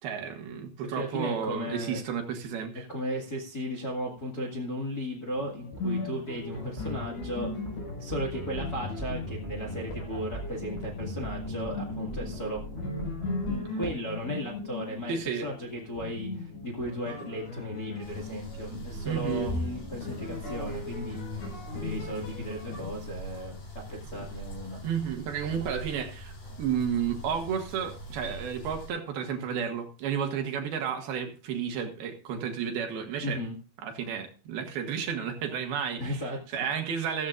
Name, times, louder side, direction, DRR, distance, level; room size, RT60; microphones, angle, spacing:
voice 1, 0.0-2.9 15.1-15.5 19.0-19.5 24.1-24.3 24.8-33.4 33.8-36.3 36.5-37.3, right 7 dB, 65° right, 5 dB, 3.0 m, -32 dB
voice 2, 0.9-2.0 2.9-7.5 8.0-12.6 13.4-15.1 15.4-24.8 33.2-33.6 36.0-36.6, equal, 40° left, -1 dB, 1.4 m, -36 dB
sound 1, 5.3-23.1, left 3 dB, 85° left, 7.5 m, -38 dB
sound 2, 6.5-13.6, right 1 dB, 15° right, 3.7 m, -39 dB
sound 3, 18.0-28.9, right 1 dB, 55° left, 7.8 m, -41 dB
15.0 x 14.5 x 2.5 m, 0.36 s
omnidirectional pair, 5.1 m